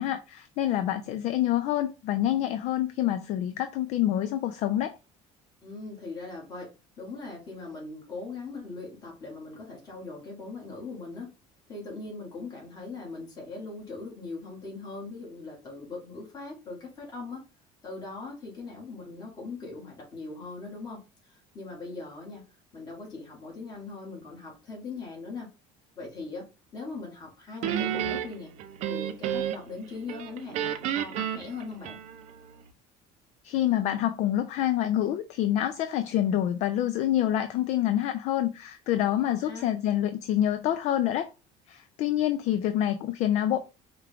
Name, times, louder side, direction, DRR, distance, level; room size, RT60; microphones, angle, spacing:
voice 1, 0.0-5.0 33.4-41.3 41.7-43.6, left 12 dB, 55° left, 0.4 m, -27 dB
voice 2, 5.6-6.7 7.0-11.3 11.7-17.4 17.8-22.4 22.7-25.5 25.9-26.4 26.7-28.5 28.9-32.0 39.1-39.7, left 3 dB, 30° left, 1.7 m, -40 dB
Guitar, 27.6-29.8 30.1-32.4, right 10 dB, 55° right, 0.4 m, -31 dB
4.7 x 2.3 x 3.5 m
cardioid pair, 160°, 14 cm